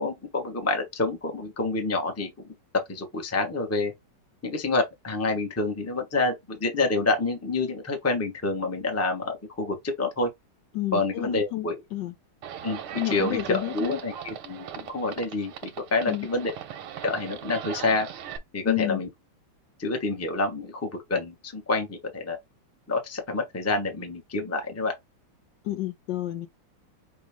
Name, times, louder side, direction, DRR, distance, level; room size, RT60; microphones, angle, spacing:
voice 1, 0.0-2.3 2.9-3.9 4.4-10.3 10.9-11.8 12.6-16.5 17.0-18.1 18.5-19.1 19.8-22.4 22.9-24.9, left 3 dB, 10° left, 0.7 m, -28 dB
voice 2, 10.7-12.1 12.9-14.0 16.1-16.3 18.6-19.0 25.6-26.5, left 16 dB, 75° left, 1.0 m, -30 dB
Livestock farm animals working animals, 12.4-18.4, right 9 dB, 85° right, 1.8 m, -39 dB
6.1 x 2.4 x 3.5 m
omnidirectional pair, 2.3 m